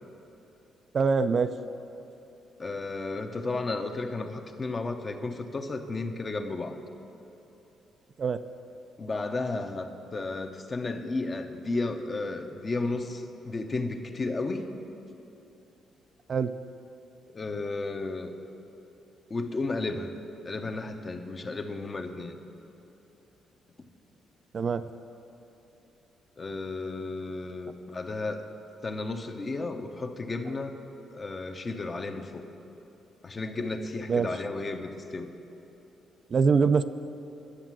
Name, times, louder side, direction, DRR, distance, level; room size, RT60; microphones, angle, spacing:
voice 1, 0.9-1.5 8.2-8.4 16.3-16.6 24.5-24.8 34.1-34.3 36.3-36.8, right 5 dB, 45° right, 10 dB, 0.4 m, -23 dB
voice 2, 2.6-6.8 9.0-14.7 17.3-18.3 19.3-20.1 20.4-22.4 26.4-28.5 28.8-30.8 31.1-32.4 33.2-35.3, left 3 dB, 35° left, 5 dB, 0.8 m, -33 dB
11.5 x 7.2 x 7.6 m, 3.0 s
cardioid pair, 90°, 0 cm